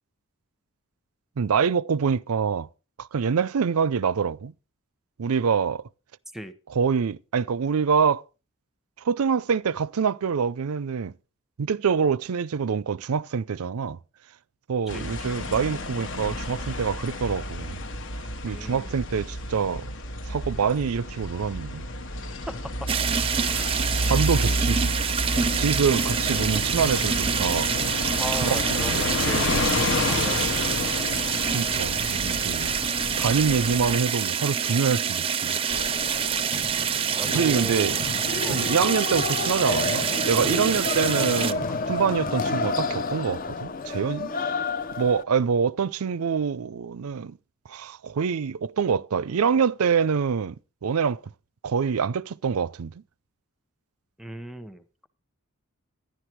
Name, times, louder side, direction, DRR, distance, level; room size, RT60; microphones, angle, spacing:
voice 1, 1.4-2.7 3.0-4.5 5.2-5.8 6.7-8.2 9.0-11.1 11.6-14.0 14.7-17.8 18.4-19.9 20.3-21.8 24.1-24.9 25.6-27.7 28.4-29.5 31.5-32.7 33.2-35.5 37.3-38.0 38.5-44.3 45.0-47.4 47.7-50.6 50.8-51.2 51.6-52.9, right 6 dB, 75° right, 0.5 m, -25 dB
sound 1, 14.9-34.0, left 1 dB, 55° left, 1.1 m, -30 dB
voice 2, 18.4-19.0 22.5-22.9 23.5-23.8 24.4-24.7 28.2-29.7 30.0-31.1 37.0-38.0 38.4-38.7 54.2-55.1, equal, ahead, 0.9 m, -37 dB
sound 2, 22.9-41.5, right 7 dB, 25° right, 0.5 m, -26 dB
sound 3, 35.7-45.2, left 3 dB, 40° left, 0.6 m, -30 dB
12.0 x 10.5 x 4.5 m
head